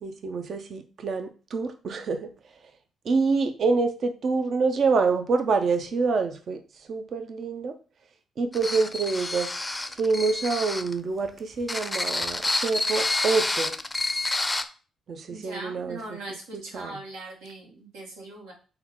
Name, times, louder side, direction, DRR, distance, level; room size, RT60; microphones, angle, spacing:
voice 1, 0.0-2.3 3.0-7.8 8.4-9.5 10.0-13.8 15.1-16.2 16.5-17.0, right 4 dB, 60° right, 7 dB, 0.5 m, -26 dB
sound 1, 8.5-10.9 11.6-14.6, left 2 dB, 20° left, 0.4 m, -28 dB
voice 2, 15.3-18.5, right 2 dB, 90° right, -2 dB, 1.1 m, -40 dB
3.6 x 2.3 x 4.3 m, 0.37 s
supercardioid pair, 55°, 0 cm